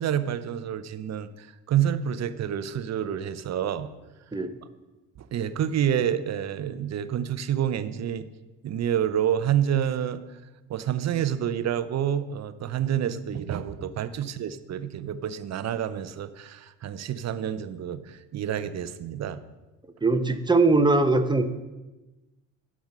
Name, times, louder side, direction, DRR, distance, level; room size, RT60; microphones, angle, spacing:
voice 1, 0.0-3.9 5.2-8.3 8.6-10.2 10.7-19.4, right 9 dB, 40° right, 13 dB, 0.7 m, -28 dB
voice 2, 20.0-21.4, right 3 dB, 10° right, 8 dB, 0.9 m, -21 dB
10.0 x 6.1 x 5.4 m, 1.1 s
hypercardioid pair, 55°, 41 cm